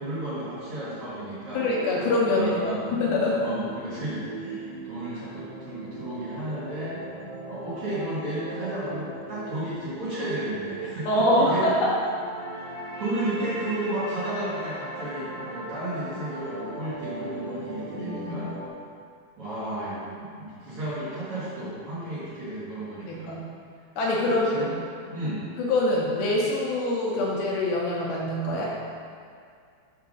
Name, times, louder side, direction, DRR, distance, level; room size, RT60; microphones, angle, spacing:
voice 1, 0.0-1.7 2.2-2.9 3.4-7.0 7.5-11.7 12.4-12.7 13.0-18.5 19.4-23.4 24.3-24.7 25.1-25.4, right 1 dB, 80° right, -11 dB, 1.3 m, -33 dB
voice 2, 1.5-3.4 11.1-11.9 18.0-18.5 23.1-23.5 24.0-24.7 25.6-28.7, left 1 dB, 75° left, -4 dB, 2.3 m, -24 dB
sound 1, 1.5-18.7, right 2 dB, 65° right, 1.9 m, -39 dB
6.6 x 3.6 x 6.2 m, 2.2 s
omnidirectional pair, 5.1 m